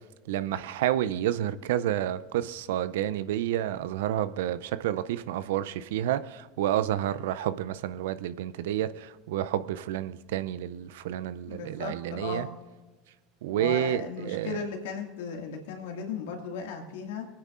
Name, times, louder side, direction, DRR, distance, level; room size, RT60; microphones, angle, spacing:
voice 1, 0.3-12.5 13.4-14.6, right 12 dB, 75° right, 0.4 m, -30 dB
voice 2, 11.5-12.5 13.6-17.3, left 5 dB, 75° left, 2.1 m, -36 dB
24.0 x 9.6 x 2.5 m
hypercardioid pair, 80°, 0 cm